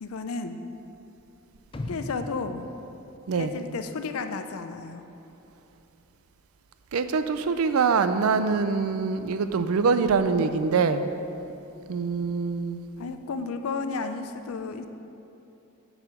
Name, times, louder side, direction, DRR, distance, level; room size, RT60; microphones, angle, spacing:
voice 1, 0.0-0.6 1.9-2.7 3.4-5.1 13.0-14.9, left 4 dB, 85° left, 8 dB, 0.5 m, -33 dB
sound 1, 1.7-3.9 4.2-4.3, left 1 dB, 25° left, 0.4 m, -39 dB
voice 2, 6.9-11.1 11.9-12.9, right 5 dB, 85° right, 10 dB, 0.4 m, -24 dB
6.9 x 4.9 x 6.8 m, 2.9 s
head